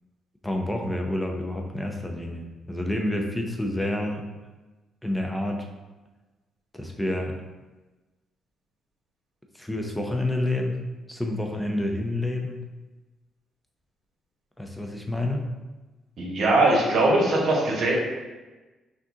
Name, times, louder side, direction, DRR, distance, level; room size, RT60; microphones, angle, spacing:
voice 1, 0.4-4.3 5.0-5.7 6.7-7.4 9.5-10.8 11.1-12.6 14.6-15.5, left 1 dB, 5° left, 2 dB, 0.6 m, -28 dB
voice 2, 16.2-17.9, right 2 dB, 65° right, -2 dB, 1.2 m, -21 dB
5.9 x 2.5 x 2.8 m, 1.2 s
cardioid pair, 90°, 0 cm